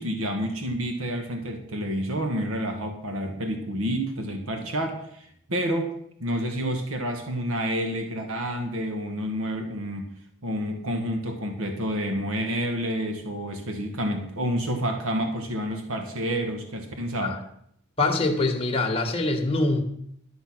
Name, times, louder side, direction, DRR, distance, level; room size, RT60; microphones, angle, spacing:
voice 1, 0.0-5.9 6.2-10.1 10.4-17.4, equal, 70° right, 5 dB, 1.6 m, -29 dB
voice 2, 18.0-19.8, left 2 dB, 25° left, 2 dB, 1.7 m, -24 dB
12.5 x 7.8 x 6.1 m, 0.69 s
head